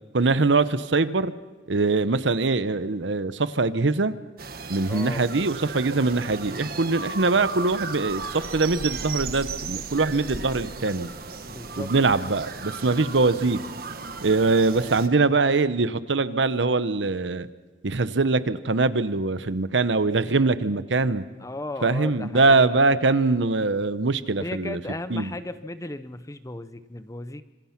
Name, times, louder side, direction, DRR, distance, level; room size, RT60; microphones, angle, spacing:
voice 1, 0.1-1.3 1.7-4.2 4.7-11.1 11.8-13.6 14.2-17.5 17.8-21.2 21.8-24.8 25.1-25.3, right 3 dB, 85° right, 14 dB, 0.9 m, -22 dB
sound 1, 4.4-15.1, right 5 dB, 55° right, 1.4 m, -35 dB
voice 2, 4.9-5.3 11.5-11.9 21.4-22.8 24.4-27.4, left 2 dB, 20° left, 13 dB, 0.7 m, -35 dB
26.0 x 26.0 x 5.9 m, 1.2 s
head